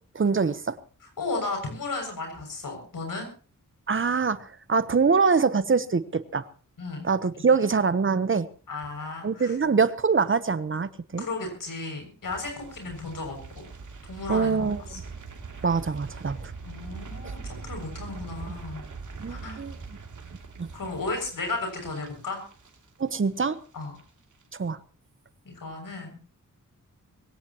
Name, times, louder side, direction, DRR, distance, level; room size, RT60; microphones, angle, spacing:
voice 1, 0.1-0.8 3.9-6.5 7.0-8.5 9.2-11.3 14.3-15.0 15.6-16.5 17.2-17.3 19.2-19.8 20.6-20.7 23.0-23.6 24.6-24.8, right 5 dB, 40° right, 15 dB, 1.0 m, -24 dB
voice 2, 1.2-3.3 6.8-7.1 8.7-9.5 11.2-13.4 14.1-15.0 16.7-18.8 19.3-19.6 20.7-22.4 23.7-24.0 25.5-26.1, left 3 dB, 85° left, 3 dB, 7.0 m, -34 dB
sound 1, 12.2-23.4 23.6-24.0 24.3-24.4, right 4 dB, 65° right, 2.9 m, -42 dB
22.5 x 17.0 x 3.0 m, 0.39 s
wide cardioid pair, 140°, 32 cm